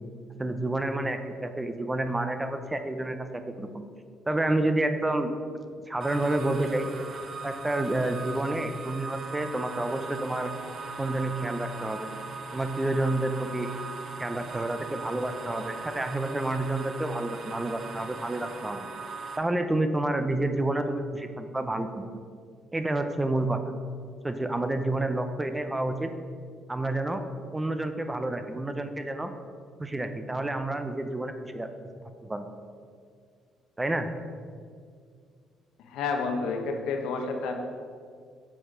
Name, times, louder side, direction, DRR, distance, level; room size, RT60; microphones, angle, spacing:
voice 1, 0.4-3.8 4.3-5.3 5.9-6.9 7.4-10.5 11.0-12.1 12.5-13.7 14.2-18.9 19.4-22.0 22.7-23.6 24.2-26.1 26.7-27.2 27.5-29.3 29.8-31.7 32.2-32.5 33.8-34.1, right 2 dB, 15° right, 8 dB, 0.6 m, -29 dB
sound 1, 6.0-19.4, right 4 dB, 45° right, 0.7 m, -39 dB
voice 2, 35.9-37.5, left 4 dB, 80° left, 3 dB, 0.9 m, -29 dB
7.3 x 4.6 x 5.0 m, 2.1 s
cardioid pair, 100°, 0 cm